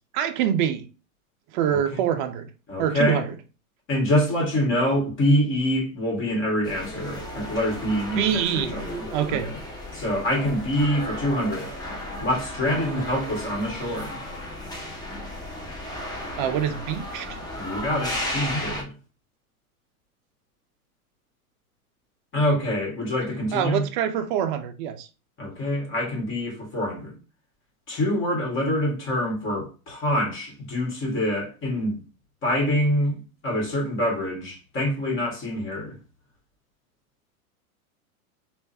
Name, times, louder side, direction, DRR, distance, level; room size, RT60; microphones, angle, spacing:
voice 1, 0.1-0.9 1.5-2.5 2.8-3.3 8.2-9.5 16.4-17.4 23.5-25.1, right 9 dB, 35° right, 0.4 m, -25 dB
voice 2, 2.7-3.2 3.9-9.6 9.9-11.7 12.2-14.2 17.5-18.9 22.3-23.8 25.4-27.2 27.9-32.0 32.4-35.9, left 1 dB, 25° left, 1.7 m, -25 dB
sound 1, 6.6-18.8, left 1 dB, 10° left, 0.7 m, -34 dB
3.5 x 2.4 x 2.7 m
hypercardioid pair, 110°, 45 cm